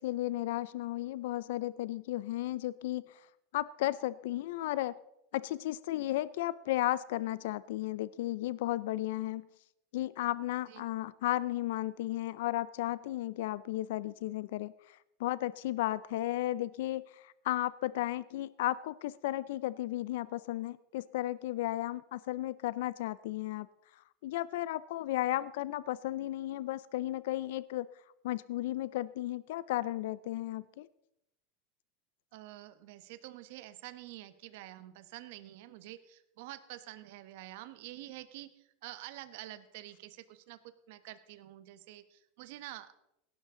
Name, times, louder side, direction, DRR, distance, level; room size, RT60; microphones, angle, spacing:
voice 1, 0.0-3.2 3.5-4.9 5.3-9.5 9.9-23.7 24.2-27.9 28.2-30.9, left 15 dB, 75° left, 18 dB, 0.5 m, -34 dB
voice 2, 32.3-42.9, right 15 dB, 70° right, 12 dB, 1.1 m, -48 dB
17.5 x 12.0 x 3.8 m, 0.81 s
supercardioid pair, 135°, 0 cm